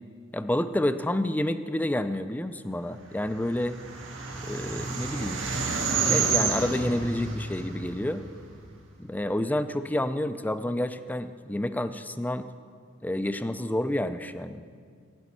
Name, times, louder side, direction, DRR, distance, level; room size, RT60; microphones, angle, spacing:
voice 1, 0.3-3.8 4.4-5.4 6.0-8.2 9.0-12.5 13.0-14.6, left 1 dB, 10° left, 11 dB, 0.5 m, -29 dB
sound 1, 3.3-8.7, right 4 dB, 85° right, 2.2 m, -29 dB
16.0 x 6.3 x 9.7 m, 2.1 s
head